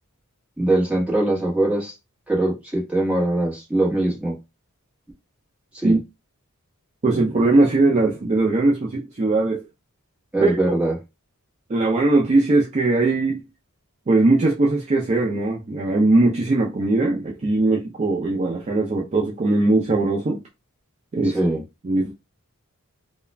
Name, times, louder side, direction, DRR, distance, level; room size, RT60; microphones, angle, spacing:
voice 1, 0.6-1.9 2.3-4.4 5.7-6.0 10.3-10.9 21.2-21.6, right 1 dB, 5° right, 1.1 m, -22 dB
voice 2, 7.0-9.6 10.4-10.7 11.7-13.5 14.1-20.4 21.1-21.4 21.8-22.1, right 2 dB, 30° right, 0.4 m, -20 dB
2.3 x 2.1 x 3.1 m
head